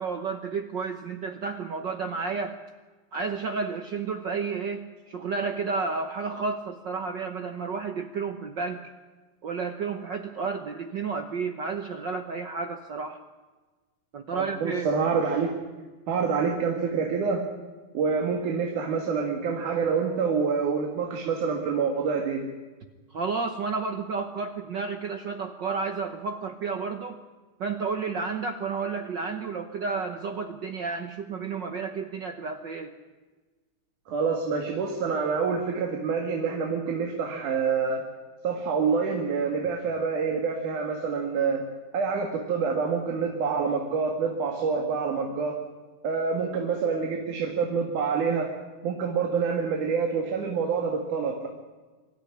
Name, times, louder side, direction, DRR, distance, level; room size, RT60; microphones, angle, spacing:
voice 1, 0.0-2.6 3.1-8.9 9.4-13.2 14.1-14.9 23.1-27.2 27.6-32.9, right 4 dB, 65° right, 6 dB, 1.1 m, -31 dB
voice 2, 14.3-15.6 16.1-17.5 17.9-22.4 34.1-38.1 38.4-41.6 41.9-45.6 46.0-48.5 48.8-51.5, right 5 dB, 85° right, 2 dB, 3.5 m, -27 dB
25.0 x 13.5 x 9.8 m, 1.3 s
omnidirectional pair, 3.4 m